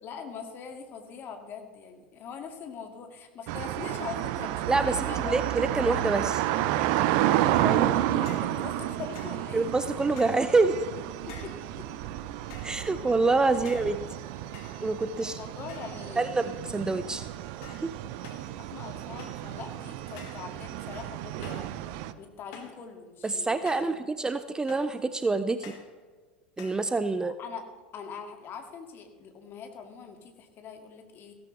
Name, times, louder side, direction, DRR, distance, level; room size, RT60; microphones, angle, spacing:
voice 1, 0.0-5.4 7.9-9.7 11.3-11.9 13.6-13.8 15.2-16.3 18.5-21.7 22.2-24.0 27.4-27.7 27.9-31.3, left 6 dB, 40° left, 5 dB, 2.2 m, -42 dB
sound 1, 3.5-22.1, right 13 dB, 55° right, 0.7 m, -31 dB
voice 2, 4.7-6.4 7.6-7.9 9.5-10.9 12.6-14.0 14.8-15.4 16.2-17.2 17.8-17.9 23.2-25.8 26.6-27.4, right 3 dB, 10° right, 12 dB, 0.5 m, -26 dB
sound 2, 8.3-8.6 9.1-9.4 10.2-10.5 11.3-11.7 12.5-12.8 13.6-14.0 14.5-15.2 15.7-16.1 16.4-16.8 17.6-17.9 18.2-18.5 19.2-19.5 20.2-20.5 21.4-21.7 22.5-22.8 23.7-24.0 24.7-25.0 25.6-25.9 26.6-26.9, left 6 dB, 55° left, 2.4 m, -48 dB
16.0 x 14.0 x 3.3 m, 1.4 s
figure-of-eight pair, 85°, 6 cm